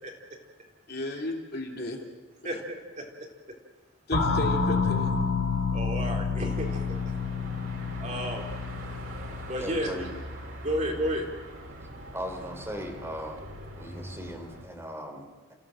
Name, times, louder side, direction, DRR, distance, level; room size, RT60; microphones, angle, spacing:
voice 1, 0.9-2.0 2.4-2.6 4.1-5.2, left 1 dB, 50° left, 1 dB, 2.9 m, -34 dB
voice 2, 2.4-3.0 5.7-6.8 8.0-8.4 9.5-10.1 10.6-11.2, equal, 35° right, 0 dB, 3.4 m, -31 dB
sound 1, 4.1-10.4, left 4 dB, 90° left, 2.3 m, -29 dB
Car passing by / Traffic noise roadway noise / Engine, 6.5-14.6, right 1 dB, 70° right, 3.8 m, -42 dB
voice 3, 9.6-10.1 12.1-13.4 13.8-15.5, equal, 10° right, 1 dB, 3.3 m, -38 dB
29.5 x 15.0 x 7.6 m, 1.3 s
head